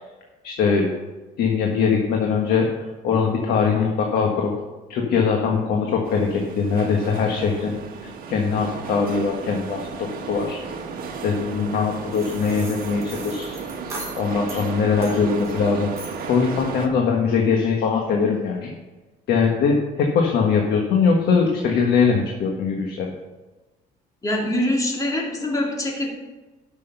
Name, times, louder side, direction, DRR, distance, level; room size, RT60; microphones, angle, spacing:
voice 1, 0.4-0.9 1.4-2.7 3.0-4.5 4.9-7.7 8.3-10.6 11.2-13.6 14.2-15.9 16.3-18.7 19.3-23.1, left 5 dB, 70° left, 1 dB, 1.5 m, -21 dB
sound 1, 6.0-16.9, right 5 dB, 60° right, 1.5 m, -34 dB
sound 2, 12.1-14.7 15.0-15.6 16.0-16.3, right 2 dB, 15° right, 3.9 m, -39 dB
voice 2, 24.2-26.1, left 1 dB, 20° left, -1 dB, 2.6 m, -24 dB
11.5 x 6.3 x 5.6 m, 1.2 s
cardioid pair, 110°, 17 cm